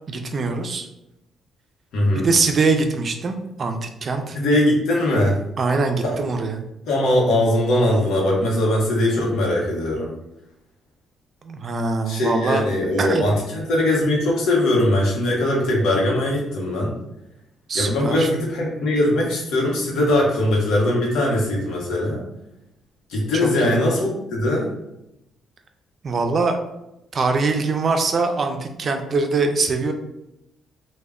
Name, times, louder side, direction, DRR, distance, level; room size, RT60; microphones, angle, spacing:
voice 1, 0.1-0.9 2.1-4.4 5.6-6.6 11.4-12.6 13.0-13.3 17.7-18.3 23.4-23.8 26.0-26.6 27.1-29.9, right 4 dB, 45° right, 5 dB, 0.4 m, -23 dB
voice 2, 1.9-2.3 4.3-5.4 6.0-6.2 6.9-10.1 12.1-16.9 17.7-22.2 23.1-24.7, left 1 dB, 80° left, -2 dB, 0.8 m, -20 dB
2.1 x 2.1 x 3.5 m, 0.88 s
cardioid pair, 90°, 0 cm